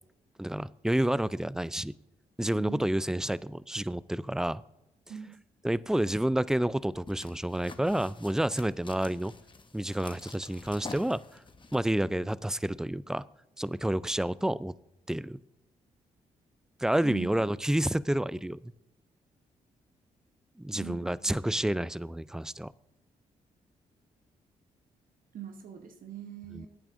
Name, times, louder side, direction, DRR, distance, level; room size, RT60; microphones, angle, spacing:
voice 1, 0.4-1.9 2.4-4.6 5.6-9.3 9.7-11.2 11.7-13.2 13.6-14.7 15.1-15.4 16.8-18.7 20.6-22.7 26.5-26.7, right 1 dB, 5° right, 20 dB, 0.3 m, -29 dB
voice 2, 2.5-2.9 5.1-5.3 17.0-17.4 20.7-21.2 21.5-21.8 25.3-26.7, right 8 dB, 65° right, 6 dB, 0.9 m, -43 dB
sound 1, 6.7-11.8, left 3 dB, 30° left, 1.1 m, -48 dB
16.5 x 8.8 x 2.5 m, 0.90 s
supercardioid pair, 50°, 15 cm